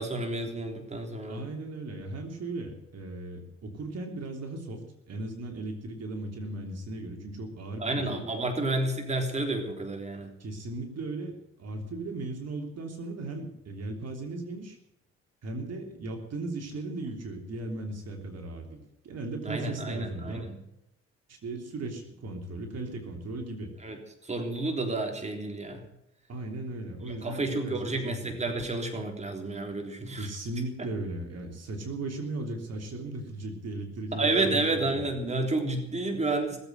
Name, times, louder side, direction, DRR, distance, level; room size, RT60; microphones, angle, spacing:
voice 1, 0.0-1.4 7.8-10.3 19.4-20.6 23.8-24.0 24.2-25.8 27.2-30.3 34.1-36.6, right 2 dB, 20° right, 3 dB, 3.6 m, -30 dB
voice 2, 1.3-8.2 10.4-14.8 15.4-20.5 21.3-23.7 26.3-28.3 30.1-35.0, right 2 dB, 55° right, 3 dB, 3.3 m, -37 dB
20.0 x 8.1 x 8.0 m, 0.83 s
cardioid pair, 90°, 30 cm